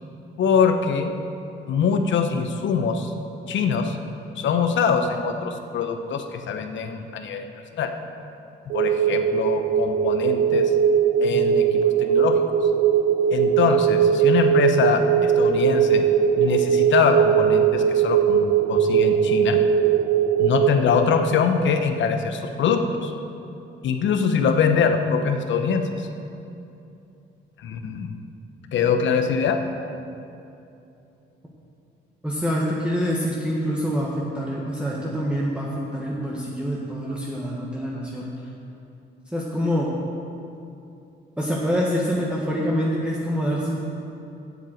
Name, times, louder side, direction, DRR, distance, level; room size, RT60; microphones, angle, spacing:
voice 1, 0.4-1.1 1.7-3.1 3.5-4.0 4.4-7.4 7.7-7.9 8.7-10.7 11.2-12.4 13.3-16.0 16.4-19.6 20.4-23.1 23.8-26.1 27.6-28.1 28.7-29.6, left 6 dB, 70° left, 7 dB, 1.0 m, -23 dB
sound 1, 8.7-20.7, right 8 dB, 85° right, 0.7 m, -20 dB
voice 2, 32.2-38.3 39.3-39.9 41.4-43.8, equal, 5° right, -5 dB, 1.4 m, -26 dB
8.1 x 7.5 x 7.8 m, 2.7 s
cardioid pair, 90°, 20 cm